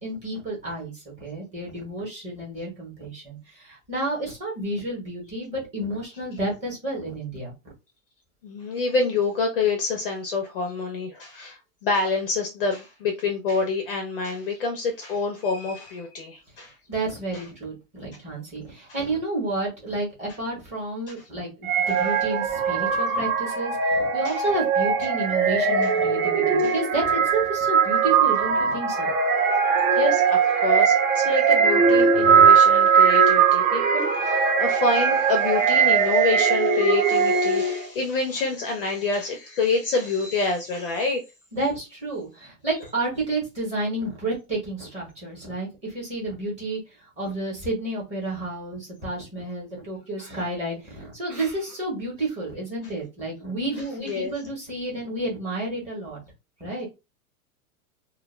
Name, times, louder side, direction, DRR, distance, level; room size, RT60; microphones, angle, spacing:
voice 1, 0.0-7.5 16.9-29.1 41.5-56.2 56.6-56.9, right 2 dB, 15° right, 0.9 m, -31 dB
voice 2, 8.4-16.7 17.3-17.4 24.2-24.4 26.6-26.7 29.9-41.2 54.1-54.3, left 4 dB, 40° left, 0.4 m, -27 dB
sound 1, 21.6-37.9, right 6 dB, 60° right, 0.7 m, -20 dB
2.2 x 2.1 x 3.1 m
supercardioid pair, 165°, 44 cm